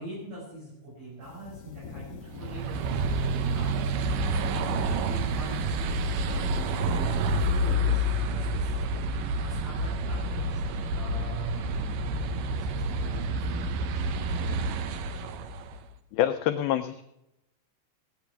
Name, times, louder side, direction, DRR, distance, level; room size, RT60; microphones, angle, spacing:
voice 1, 0.0-11.9 12.2-14.0 14.4-15.3, right 1 dB, 60° right, -8 dB, 7.2 m, -44 dB
sound 1, 1.2-7.8, left 6 dB, 55° left, 2.3 m, -44 dB
sound 2, 2.3-15.8, right 1 dB, 90° right, 1.8 m, -28 dB
voice 2, 16.1-17.0, left 12 dB, 85° left, 8 dB, 2.1 m, -27 dB
17.0 x 9.3 x 5.9 m, 0.86 s
omnidirectional pair, 5.0 m